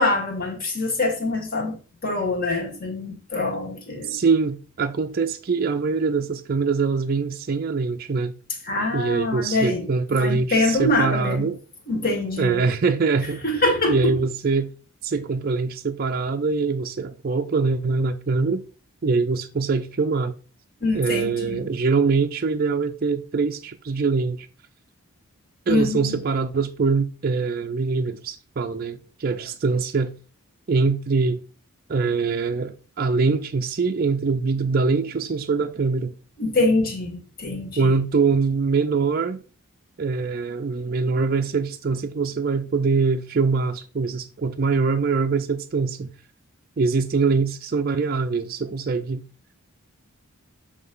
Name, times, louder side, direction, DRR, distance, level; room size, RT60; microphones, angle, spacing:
voice 1, 0.0-4.2 8.7-9.9 10.1-11.5 11.9-12.6 13.4-14.2 20.8-21.7 25.7-26.2 36.4-38.0, left 2 dB, 40° left, 2.1 m, -24 dB
voice 2, 4.0-8.3 8.9-11.6 12.4-13.4 13.9-14.7 15.0-18.6 19.0-20.3 20.9-24.5 25.7-30.1 30.7-31.4 31.9-36.1 37.8-39.4 40.0-46.1 46.8-49.2, right 4 dB, 40° right, 0.4 m, -23 dB
7.7 x 3.3 x 5.4 m
head